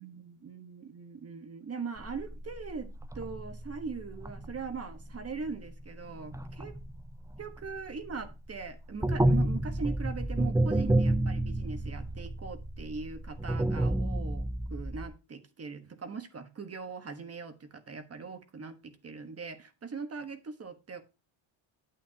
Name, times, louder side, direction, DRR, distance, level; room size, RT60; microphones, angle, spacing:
voice 1, 0.0-6.7 7.4-21.0, right 5 dB, 30° right, 1.3 m, -41 dB
sound 1, 2.0-8.3 8.6-15.1, right 1 dB, 5° right, 0.5 m, -30 dB
9.2 x 8.8 x 2.8 m
cardioid pair, 135°, 48 cm